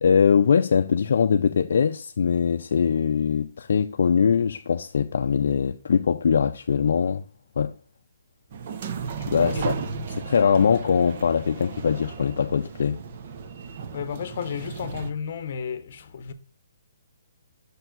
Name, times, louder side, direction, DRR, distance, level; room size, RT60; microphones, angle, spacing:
voice 1, 0.0-7.2 7.6-7.7 9.3-9.7 10.1-13.0, left 6 dB, 65° left, 0.4 m, -22 dB
sound 1, 8.5-15.1, right 5 dB, 40° right, 0.8 m, -34 dB
voice 2, 13.9-16.3, left 7 dB, 45° left, 0.9 m, -33 dB
6.8 x 4.4 x 3.9 m
hypercardioid pair, 165°, 0 cm